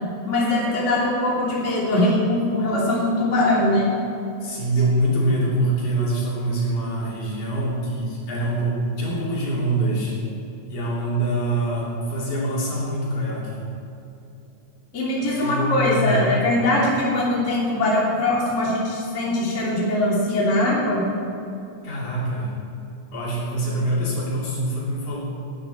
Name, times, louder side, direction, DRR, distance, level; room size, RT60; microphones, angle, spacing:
voice 1, 0.3-3.9 14.9-21.0, left 1 dB, 20° left, -6 dB, 3.0 m, -21 dB
voice 2, 4.4-10.2 10.7-13.6 15.2-16.2 16.6-16.8 21.8-22.5 23.1-25.2, right 1 dB, 60° left, -6 dB, 4.4 m, -24 dB
18.0 x 11.0 x 4.4 m, 2.9 s
omnidirectional pair, 3.9 m